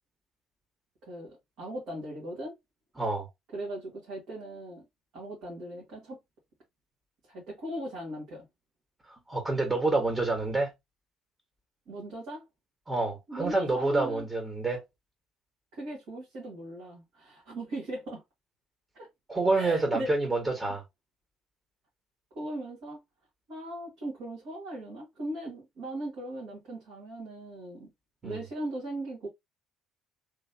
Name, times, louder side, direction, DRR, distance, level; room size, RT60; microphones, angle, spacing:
voice 1, 1.0-2.5 3.5-4.8 5.1-6.2 7.2-8.5 11.9-12.5 13.3-14.3 15.7-18.2 18.9-19.1 19.5-20.1 22.4-23.0 23.5-27.9 28.2-29.3, right 1 dB, 60° right, 1.8 m, -38 dB
voice 2, 3.0-3.3 9.1-10.7 12.9-14.8 19.3-20.8 28.2-28.4, right 3 dB, 20° right, 1.5 m, -28 dB
3.3 x 3.2 x 2.8 m
figure-of-eight pair, 55°, 0 cm